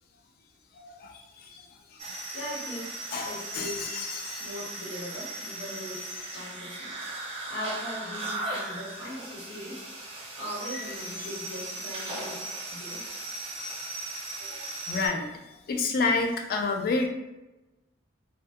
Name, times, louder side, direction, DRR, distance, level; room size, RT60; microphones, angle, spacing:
voice 1, 0.8-1.6 2.0-2.1 3.1-4.5 14.9-15.3 15.7-17.1, left 3 dB, 55° left, 4 dB, 0.3 m, -29 dB
sound 1, 2.0-15.1, right 2 dB, 35° right, 0.5 m, -37 dB
voice 2, 2.3-3.9 4.4-6.9 7.5-9.9 10.4-13.0 14.4-14.8, equal, 80° left, -7 dB, 1.1 m, -40 dB
2.3 x 2.0 x 2.7 m, 1.0 s
head